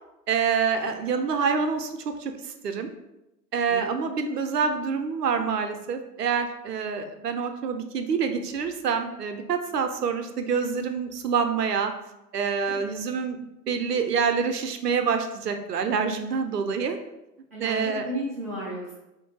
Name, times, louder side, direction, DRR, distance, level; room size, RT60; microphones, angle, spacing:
voice 1, 0.3-2.3 2.6-2.9 3.5-11.9 12.3-13.4 13.7-17.0 17.6-18.1, right 6 dB, 70° right, 7 dB, 0.7 m, -26 dB
voice 2, 3.7-4.1 17.5-18.9, right 1 dB, 10° right, -9 dB, 0.3 m, -33 dB
3.7 x 2.6 x 3.8 m, 0.92 s
figure-of-eight pair, 105°, 49 cm